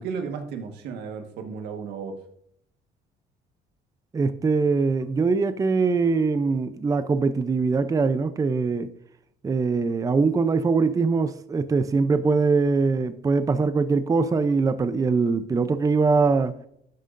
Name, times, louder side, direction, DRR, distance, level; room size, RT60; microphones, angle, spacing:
voice 1, 0.0-2.2, right 5 dB, 85° right, 1.4 m, -34 dB
voice 2, 4.1-8.9 9.4-16.5, right 4 dB, 20° right, 0.5 m, -22 dB
12.0 x 8.9 x 2.6 m
cardioid pair, 110°, 17 cm